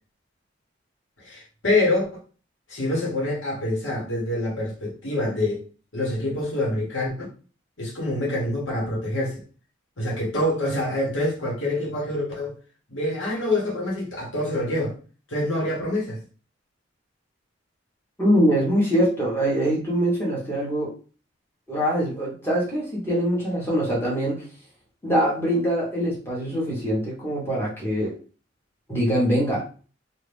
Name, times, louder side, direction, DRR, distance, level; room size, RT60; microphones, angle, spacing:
voice 1, 1.2-2.1 2.7-5.6 5.9-7.1 7.8-9.4 10.0-12.6 12.9-14.9 15.3-16.2, left 1 dB, 80° left, 1.4 m, -26 dB
voice 2, 18.2-20.9 21.7-24.5 25.0-28.2 28.9-29.7, equal, 10° left, 1.2 m, -23 dB
2.8 x 2.6 x 3.4 m
head